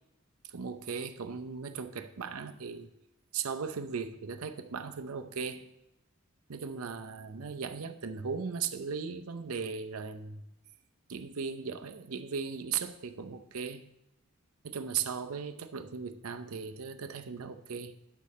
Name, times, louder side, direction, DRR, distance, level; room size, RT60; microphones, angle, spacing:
voice 1, 0.5-2.9 3.3-5.7 6.5-10.4 11.1-13.8 14.6-18.0, right 6 dB, 75° right, 8 dB, 0.6 m, -37 dB
10.0 x 6.6 x 4.1 m, 0.88 s
head